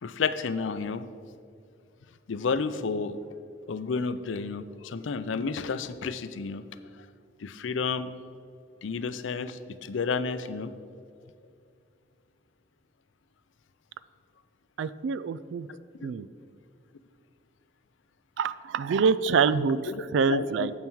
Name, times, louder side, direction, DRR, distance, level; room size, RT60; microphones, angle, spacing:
voice 1, 0.0-1.1 2.3-3.2 3.7-6.6 7.4-8.1 8.8-10.7 16.0-16.1 19.9-20.7, left 5 dB, 80° left, 12 dB, 0.5 m, -31 dB
voice 2, 14.8-15.7 16.0-16.3 18.4-19.8 20.1-20.7, right 5 dB, 75° right, 16 dB, 0.3 m, -25 dB
9.0 x 7.5 x 4.6 m, 2.4 s
head